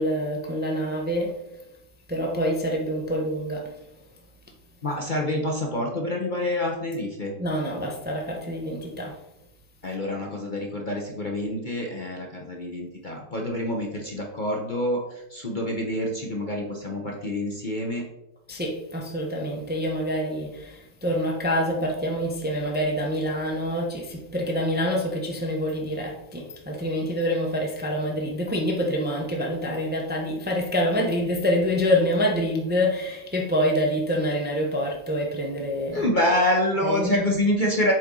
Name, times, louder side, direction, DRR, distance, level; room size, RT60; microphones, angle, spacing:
voice 1, 0.0-1.4 2.1-3.7 7.4-9.2 18.5-36.1 36.8-37.2, equal, 10° right, 0.7 m, -26 dB
voice 2, 4.8-7.3 9.8-18.0 35.9-37.9, left 1 dB, 40° left, 0.8 m, -27 dB
7.6 x 4.3 x 3.8 m
omnidirectional pair, 1.6 m